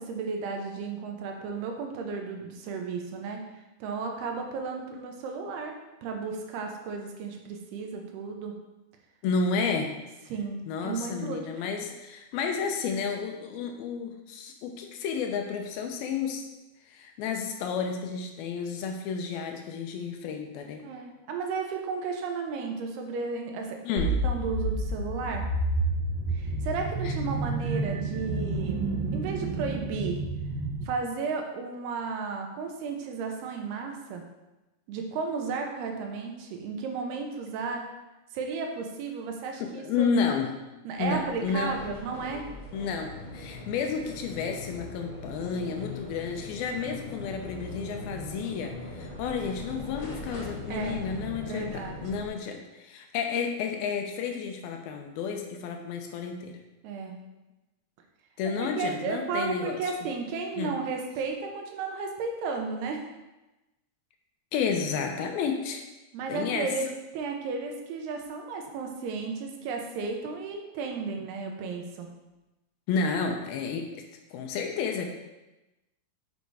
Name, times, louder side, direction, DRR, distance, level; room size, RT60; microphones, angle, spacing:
voice 1, 0.0-3.4 3.8-5.7 6.0-8.6 10.3-11.5 20.8-23.8 24.2-25.5 26.3-30.2 30.8-34.2 34.9-37.8 38.3-40.1 40.8-42.4 50.7-51.0 51.5-52.0 56.8-57.2 58.6-63.1 66.1-66.9 67.1-72.1, right 4 dB, 80° right, 2 dB, 3.0 m, -34 dB
voice 2, 9.2-10.0 10.7-16.4 16.9-20.8 23.8-24.2 27.0-27.2 39.6-40.5 41.0-41.8 42.7-56.6 58.4-59.8 60.6-60.8 64.5-65.8 66.3-66.7 72.9-73.9 74.3-75.1, left 5 dB, 75° left, 3 dB, 2.5 m, -31 dB
sound 1, 24.0-30.8, right 2 dB, 45° right, 1.9 m, -29 dB
Inside the bus, 41.0-52.3, left 2 dB, 50° left, 3.5 m, -41 dB
8.1 x 5.7 x 4.8 m, 1.0 s
omnidirectional pair, 4.6 m